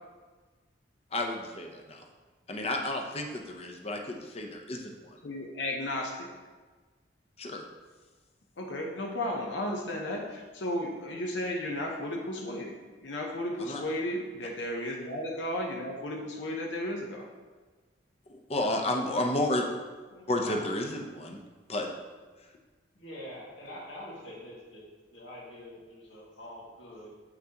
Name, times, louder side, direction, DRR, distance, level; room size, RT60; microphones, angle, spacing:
voice 1, 1.1-2.0 2.5-5.2 7.4-7.6 13.6-13.8 18.3-19.7 20.3-21.4 21.7-21.9, left 1 dB, 35° left, 2 dB, 0.7 m, -31 dB
voice 2, 5.2-6.3 8.6-17.3, left 1 dB, 75° left, 0 dB, 0.8 m, -34 dB
voice 3, 20.1-20.6 22.9-27.1, left 1 dB, 90° left, -5 dB, 2.1 m, -45 dB
7.8 x 5.9 x 2.9 m, 1.3 s
head